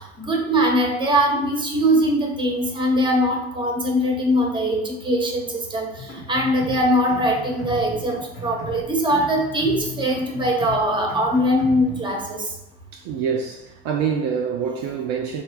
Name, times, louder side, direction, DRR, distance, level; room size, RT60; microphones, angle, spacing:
voice 1, 0.2-12.4, equal, 15° right, 0.9 m, -21 dB
sound 1, 6.0-12.1, left 1 dB, 70° left, 1.1 m, -36 dB
voice 2, 12.9-15.4, right 7 dB, 55° right, 0.5 m, -26 dB
4.8 x 2.3 x 3.0 m
figure-of-eight pair, 65°, 30 cm